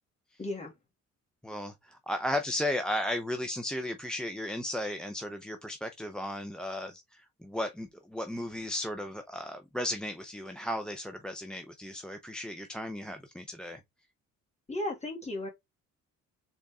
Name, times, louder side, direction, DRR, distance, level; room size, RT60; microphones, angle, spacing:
voice 1, 0.4-0.7 14.7-15.5, left 1 dB, 20° left, 2.1 m, -35 dB
voice 2, 1.4-13.8, left 1 dB, 5° left, 0.6 m, -35 dB
3.9 x 3.6 x 3.5 m
cardioid pair, 90°, 30 cm